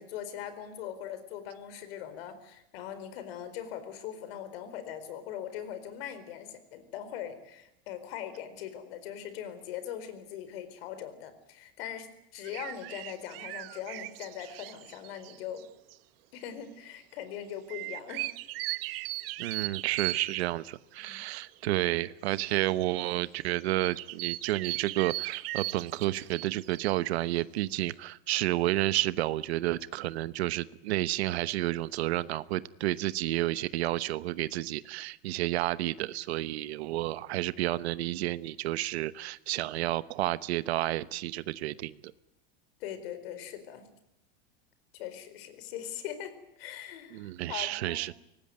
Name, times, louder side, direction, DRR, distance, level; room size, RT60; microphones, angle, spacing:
voice 1, 0.0-15.7 16.3-18.3 21.0-21.2 42.8-43.9 44.9-48.1, left 9 dB, 70° left, 12 dB, 4.5 m, -41 dB
sound 1, 12.4-15.6 15.9-16.0 17.7-20.4 21.6-21.7 22.7-23.1 23.8-26.9, right 20 dB, 65° right, 1.0 m, -38 dB
voice 2, 19.4-42.1 47.1-48.1, right 16 dB, 85° right, 16 dB, 1.1 m, -31 dB
23.5 x 19.0 x 9.4 m, 0.83 s
supercardioid pair, 160°, 31 cm